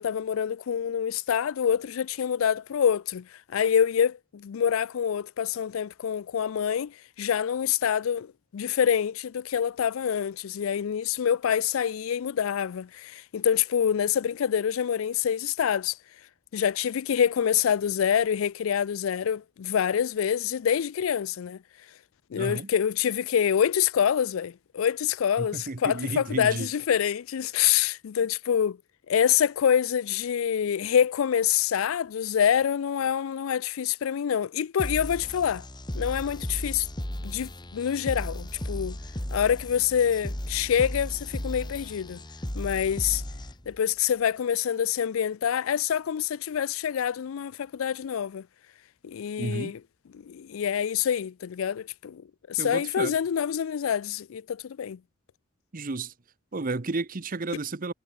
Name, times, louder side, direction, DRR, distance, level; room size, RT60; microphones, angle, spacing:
voice 1, 0.0-8.3 8.5-15.9 16.5-21.6 22.3-28.8 29.1-35.6 35.9-36.9 37.2-39.0 39.3-42.2 42.6-43.2 43.7-48.5 49.0-49.8 50.1-52.2 52.5-55.0, left 8 dB, 75° left, 0.4 m, -26 dB
voice 2, 22.4-22.7 25.4-26.7 49.4-49.7 52.6-53.1 55.7-56.1 56.5-57.9, right 3 dB, 40° right, 0.9 m, -32 dB
sound 1, 34.8-43.8, equal, 20° left, 2.3 m, -35 dB
head